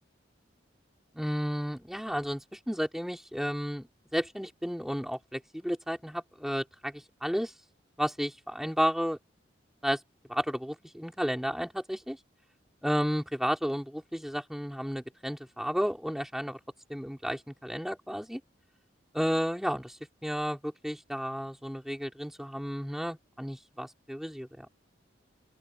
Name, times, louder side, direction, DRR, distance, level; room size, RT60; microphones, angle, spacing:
voice 1, 1.1-7.5 8.0-9.2 9.8-10.0 10.3-12.2 12.8-16.6 16.9-18.4 19.1-20.0 20.2-24.7, equal, ahead, 5.2 m, -32 dB
open air
head